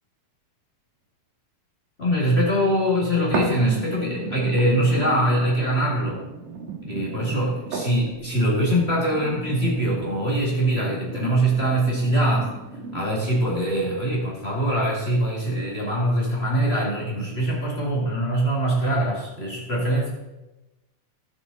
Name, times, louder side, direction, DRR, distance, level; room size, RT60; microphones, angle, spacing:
voice 1, 2.0-6.2 6.9-12.5 12.9-20.1, right 1 dB, 25° left, -4 dB, 1.7 m, -23 dB
sound 1, 3.3-13.3 13.9-14.0, right 4 dB, 85° right, 3.3 m, -34 dB
16.0 x 7.0 x 4.0 m, 1.0 s
omnidirectional pair, 3.8 m